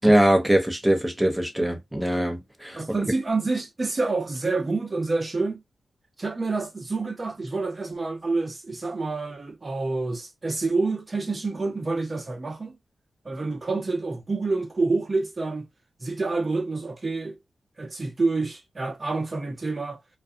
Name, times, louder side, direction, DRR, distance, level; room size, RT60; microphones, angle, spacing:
voice 1, 0.0-2.8, right 1 dB, 10° right, 0.9 m, -21 dB
voice 2, 2.7-5.6 6.2-12.8 13.2-15.7 16.0-17.4 17.8-20.0, right 3 dB, 40° right, 0.9 m, -28 dB
2.4 x 2.3 x 2.7 m
supercardioid pair, 45°, 0 cm